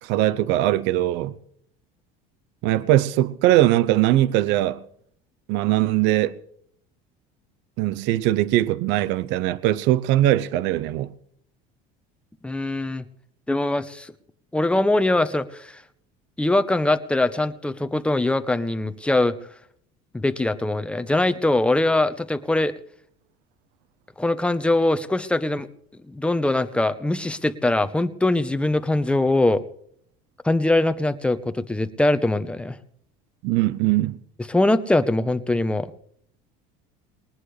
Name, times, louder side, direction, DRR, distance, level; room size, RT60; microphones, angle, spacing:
voice 1, 0.0-1.4 2.6-4.8 5.5-6.3 7.8-11.1 33.4-34.2, right 14 dB, 70° right, 0.8 m, -21 dB
voice 2, 12.4-13.0 13.5-14.1 14.5-15.8 16.4-19.4 20.1-22.7 24.2-25.7 26.1-29.6 30.4-32.8 34.5-35.9, left 2 dB, 5° left, 0.9 m, -22 dB
20.5 x 19.5 x 3.3 m
supercardioid pair, 120°, 19 cm